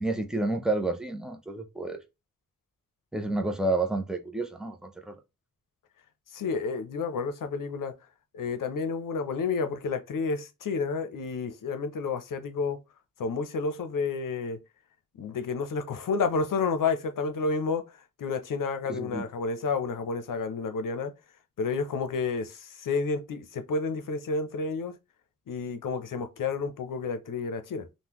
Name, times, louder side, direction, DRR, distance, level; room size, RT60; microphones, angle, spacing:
voice 1, 0.0-2.0 3.1-5.1 18.9-19.2, right 2 dB, ahead, 0.4 m, -30 dB
voice 2, 6.3-8.0 8.3-12.8 13.2-14.6 15.1-21.1 21.6-25.0 25.5-27.9, left 4 dB, 80° left, 0.6 m, -30 dB
3.6 x 2.1 x 2.9 m
wide cardioid pair, 150°, 32 cm